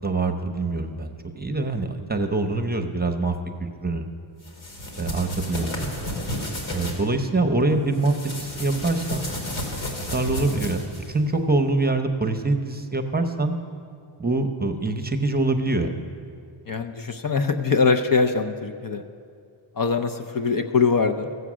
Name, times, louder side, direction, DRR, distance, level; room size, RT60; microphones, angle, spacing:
voice 1, 0.0-3.4 3.8-4.1 5.0-5.9 6.7-9.3 10.1-13.6 14.2-15.9, right 2 dB, 20° right, 5 dB, 0.8 m, -24 dB
sound 1, 4.4-7.0 7.9-11.1, equal, 75° left, 2.4 m, -32 dB
voice 2, 16.7-19.0 19.8-21.3, left 5 dB, 45° left, 7 dB, 0.7 m, -23 dB
15.5 x 8.0 x 6.2 m, 2.3 s
wide cardioid pair, 110°, 49 cm